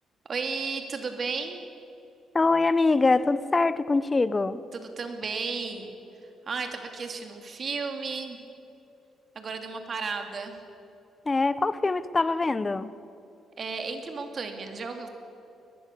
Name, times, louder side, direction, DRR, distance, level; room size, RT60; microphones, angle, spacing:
voice 1, 0.3-1.6 4.7-6.0 6.5-8.4 9.3-10.5 13.6-15.1, right 4 dB, 45° right, 5 dB, 2.7 m, -33 dB
voice 2, 2.3-4.6 11.3-12.9, left 3 dB, 25° left, 16 dB, 0.9 m, -23 dB
21.5 x 20.5 x 6.9 m, 2.7 s
cardioid pair, 90°, 0 cm